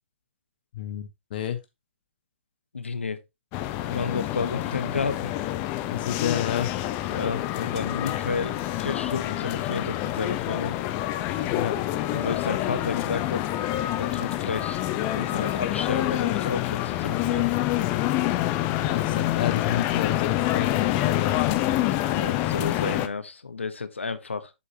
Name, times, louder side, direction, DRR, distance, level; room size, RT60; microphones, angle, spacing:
voice 1, 0.7-1.6 5.9-6.7 11.4-11.8 18.8-21.6, left 10 dB, 50° left, 1.2 m, -30 dB
voice 2, 2.7-3.2 3.9-5.3 7.1-10.8 12.1-13.4 14.0-17.5 21.9-24.5, left 4 dB, 85° left, 1.1 m, -31 dB
sound 1, 3.5-23.1, left 14 dB, 30° left, 0.8 m, -27 dB
8.4 x 6.5 x 2.9 m
hypercardioid pair, 130°, 6 cm